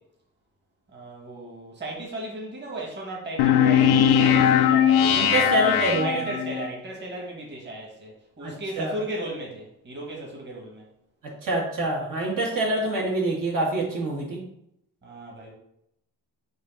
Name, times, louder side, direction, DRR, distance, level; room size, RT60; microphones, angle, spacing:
voice 1, 0.9-10.8 15.0-15.5, right 1 dB, 30° right, -2 dB, 1.7 m, -35 dB
sound 1, 3.4-6.7, left 9 dB, 85° left, 0.7 m, -19 dB
voice 2, 5.2-6.2 8.4-8.9 11.2-14.4, right 2 dB, 55° right, -2 dB, 1.6 m, -26 dB
6.5 x 2.7 x 5.6 m, 0.77 s
cardioid pair, 145°, 38 cm